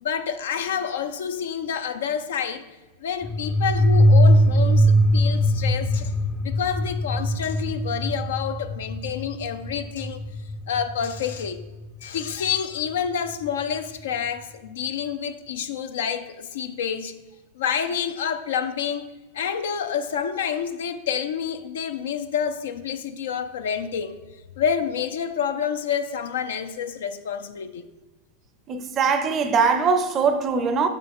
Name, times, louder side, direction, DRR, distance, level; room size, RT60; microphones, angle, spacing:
voice 1, 0.0-2.6 3.0-6.2 6.4-10.2 10.7-11.6 12.0-17.1 17.6-19.1 19.3-24.2 24.6-27.9, left 8 dB, 80° left, 0.4 m, -28 dB
sound 1, 3.2-11.6, equal, 20° left, 0.5 m, -21 dB
voice 2, 28.7-30.9, right 5 dB, 35° right, 0.5 m, -21 dB
6.5 x 6.0 x 3.6 m
hypercardioid pair, 110°, 0 cm